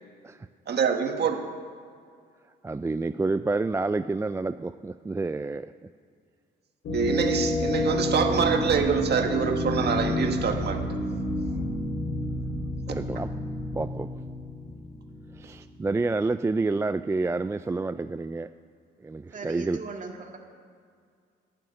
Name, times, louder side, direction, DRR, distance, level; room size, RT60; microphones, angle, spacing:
voice 1, 0.7-1.4 6.9-11.0, right 6 dB, 55° right, 4 dB, 1.7 m, -25 dB
voice 2, 2.6-5.7 12.9-13.3 13.7-14.1 15.3-18.5 19.0-19.8, right 3 dB, 15° right, 12 dB, 0.3 m, -28 dB
sound 1, 6.8-15.5, left 1 dB, 75° left, 4.8 m, -30 dB
voice 3, 19.3-20.4, right 4 dB, 40° right, 2 dB, 2.1 m, -38 dB
11.5 x 9.6 x 9.7 m, 2.1 s
cardioid pair, 90°, 20 cm